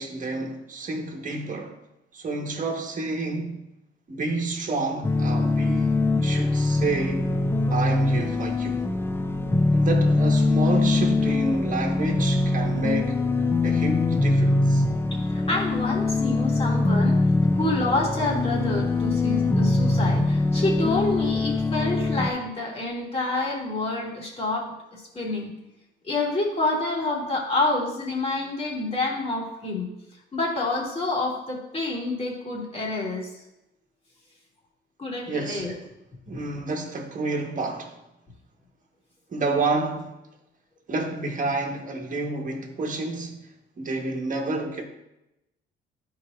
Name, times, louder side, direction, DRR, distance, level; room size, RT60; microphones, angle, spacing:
voice 1, 0.0-1.8 2.1-3.6 4.1-7.3 7.7-8.8 9.7-13.2 13.6-14.8 35.3-35.7 36.3-38.0 39.3-40.1 40.9-43.5 43.8-44.9, right 3 dB, 40° right, 1.5 m, -29 dB
sound 1, 5.0-22.3, left 2 dB, 10° left, 0.4 m, -23 dB
voice 2, 15.3-17.2 17.5-25.5 26.0-29.9 30.3-33.3 35.0-35.7, left 2 dB, 30° left, 2.7 m, -28 dB
11.5 x 4.9 x 2.6 m
cardioid pair, 90°, 20 cm